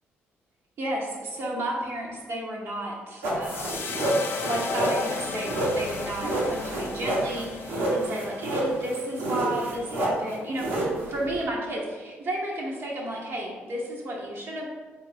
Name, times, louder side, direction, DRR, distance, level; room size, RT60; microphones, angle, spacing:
voice 1, 0.8-3.9 4.4-14.7, right 1 dB, 55° right, -3 dB, 0.7 m, -32 dB
sound 1, 3.2-11.4, right 1 dB, 85° right, 1.0 m, -29 dB
sound 2, 3.4-9.8, left 4 dB, 55° left, 0.3 m, -36 dB
3.5 x 2.4 x 3.3 m, 1.4 s
cardioid pair, 80°, 5 cm